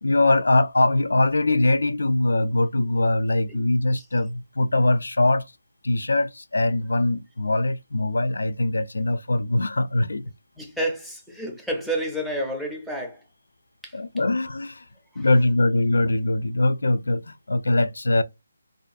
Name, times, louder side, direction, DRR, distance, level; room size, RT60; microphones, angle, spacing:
voice 1, 0.0-5.5 5.8-10.2 13.9-14.8 15.2-18.2, left 2 dB, 90° left, 0.3 m, -22 dB
voice 2, 10.6-13.2 13.8-14.0 15.1-15.3, right 1 dB, ahead, 0.4 m, -30 dB
2.5 x 2.2 x 2.4 m
hypercardioid pair, 175°, 0 cm